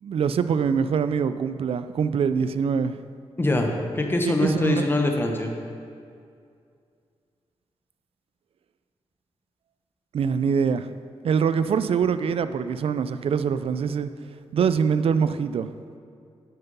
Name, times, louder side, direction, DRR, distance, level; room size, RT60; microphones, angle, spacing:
voice 1, 0.0-3.0 4.2-4.9 10.1-10.9 11.2-14.1 14.5-15.7, right 6 dB, 60° right, 12 dB, 0.4 m, -24 dB
voice 2, 3.4-5.5, left 2 dB, 20° left, 2 dB, 0.9 m, -23 dB
9.4 x 5.7 x 5.4 m, 2.4 s
wide cardioid pair, 120°, 11 cm